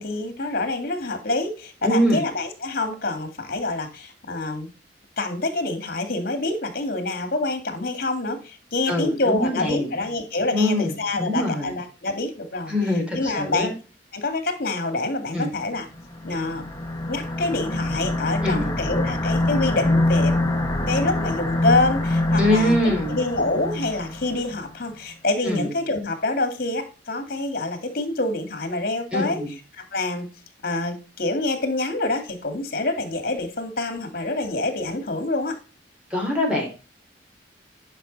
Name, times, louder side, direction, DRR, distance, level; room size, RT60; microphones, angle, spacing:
voice 1, 0.0-4.7 5.2-12.7 13.1-13.7 14.1-15.9 16.2-16.6 17.1-20.4 20.9-22.8 23.1-29.4 29.7-30.3 30.6-35.6, left 2 dB, 55° left, 8 dB, 2.2 m, -26 dB
voice 2, 1.8-2.2 8.9-9.9 10.5-11.7 12.7-13.7 15.3-15.5 18.4-18.7 22.4-23.2 25.4-25.7 29.1-29.5 36.1-36.7, left 1 dB, 5° right, -1 dB, 3.2 m, -23 dB
sound 1, 16.0-24.6, left 1 dB, 20° left, 1.5 m, -25 dB
10.0 x 5.8 x 4.1 m, 0.34 s
head